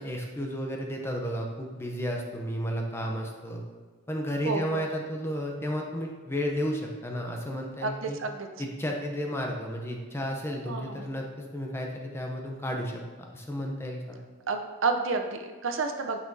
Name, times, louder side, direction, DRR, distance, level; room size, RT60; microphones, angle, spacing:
voice 1, 0.0-3.6 4.1-8.2 8.6-13.0 13.3-14.2, equal, 10° left, 1 dB, 0.6 m, -33 dB
voice 2, 4.4-4.8 7.8-8.5 10.7-11.0 14.5-16.2, right 4 dB, 60° right, 5 dB, 0.6 m, -30 dB
8.9 x 5.5 x 2.7 m, 1.5 s
head